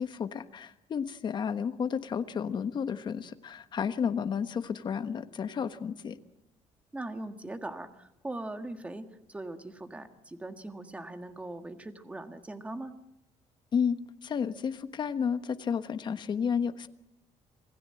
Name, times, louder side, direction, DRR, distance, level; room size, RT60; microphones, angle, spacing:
voice 1, 0.0-6.2 13.7-16.9, left 7 dB, 35° left, 10 dB, 1.3 m, -32 dB
voice 2, 6.9-12.9, right 2 dB, 10° right, 7 dB, 1.6 m, -40 dB
27.0 x 18.5 x 7.7 m, 0.85 s
cardioid pair, 170°, 13 cm